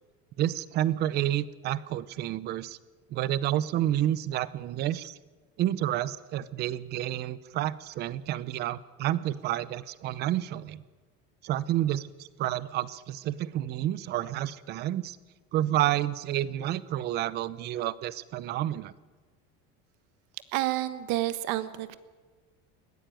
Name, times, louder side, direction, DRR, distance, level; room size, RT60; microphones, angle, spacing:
voice 1, 0.4-2.8 3.1-5.2 5.6-10.8 11.4-15.2 15.5-18.9, right 13 dB, 35° right, 18 dB, 0.7 m, -30 dB
voice 2, 20.5-22.0, right 15 dB, 65° right, 14 dB, 1.4 m, -29 dB
21.0 x 16.0 x 9.2 m, 1.3 s
cardioid pair, 180°, 30 cm